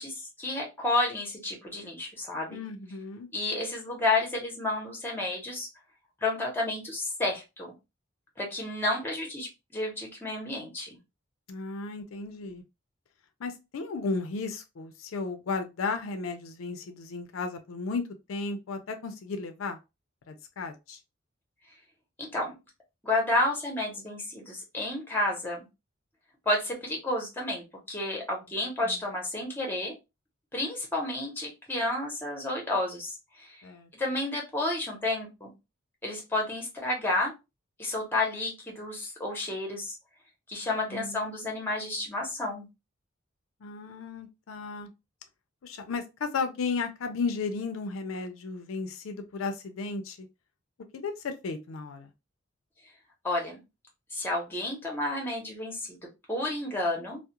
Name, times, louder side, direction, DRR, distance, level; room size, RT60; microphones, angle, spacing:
voice 1, 0.0-2.6 3.3-5.7 6.2-7.7 8.4-11.0 22.3-22.6 23.0-25.6 26.5-29.9 30.5-33.6 34.0-35.5 36.0-37.3 37.8-39.9 40.5-42.7 53.2-53.6 54.1-57.2, left 2 dB, 10° left, 0.8 m, -31 dB
voice 2, 2.5-3.3 11.5-12.6 13.4-18.0 18.3-19.8 20.3-21.0 28.8-28.9 33.6-33.9 40.9-41.9 43.6-44.9 45.6-50.3 50.9-52.1, left 4 dB, 90° left, 0.4 m, -34 dB
2.3 x 2.0 x 2.8 m
head